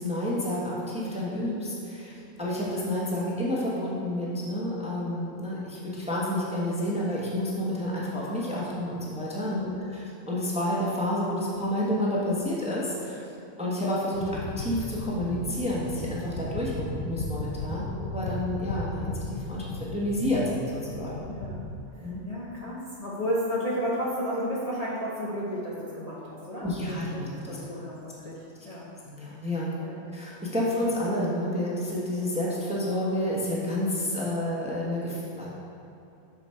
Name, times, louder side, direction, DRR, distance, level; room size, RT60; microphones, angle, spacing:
voice 1, 0.0-13.2 13.6-14.3 14.6-21.2 22.0-22.2 26.6-27.6 29.0-29.7 30.1-35.5, left 1 dB, 5° right, -6 dB, 0.9 m, -30 dB
sound 1, 14.1-21.7, left 2 dB, 75° left, 1.1 m, -36 dB
voice 2, 21.3-21.6 21.9-28.9 29.8-30.1, equal, 30° left, -7 dB, 0.8 m, -33 dB
6.3 x 6.0 x 4.4 m, 2.7 s
omnidirectional pair, 1.5 m